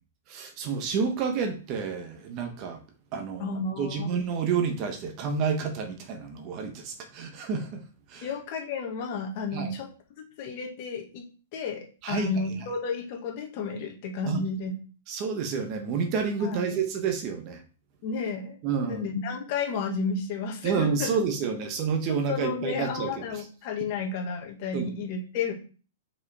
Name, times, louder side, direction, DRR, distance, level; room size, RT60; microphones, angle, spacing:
voice 1, 0.3-2.8 3.1-3.5 3.8-7.8 8.1-8.3 9.5-9.7 12.0-12.3 14.2-14.4 15.1-17.6 18.6-19.1 20.6-23.4 24.7-24.9, right 5 dB, 35° right, 1.2 m, -29 dB
voice 2, 3.4-4.1 8.2-9.9 10.2-11.2 11.5-14.7 16.4-16.7 18.0-18.5 18.8-21.1 22.3-25.5, left 4 dB, 40° left, 1.9 m, -32 dB
5.4 x 4.9 x 4.8 m
hypercardioid pair, 155°, 0 cm